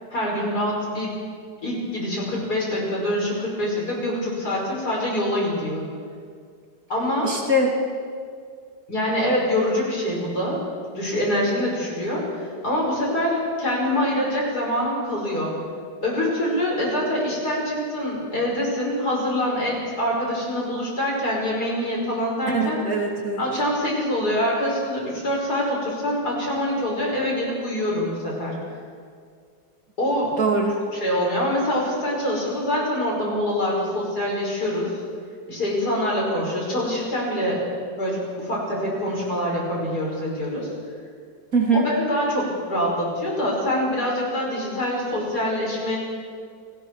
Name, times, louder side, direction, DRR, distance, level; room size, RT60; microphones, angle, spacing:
voice 1, 0.1-1.1 1.6-5.8 6.9-7.3 8.9-10.6 10.9-15.5 16.0-22.8 23.4-28.5 30.0-30.3 30.9-34.9 35.5-37.6 38.0-40.7 41.7-46.0, left 1 dB, 50° left, -3 dB, 6.2 m, -25 dB
voice 2, 7.2-7.7 22.5-23.4 30.4-30.8 41.5-41.8, right 2 dB, 45° right, 0 dB, 2.9 m, -22 dB
29.5 x 19.5 x 4.8 m, 2.1 s
omnidirectional pair, 2.1 m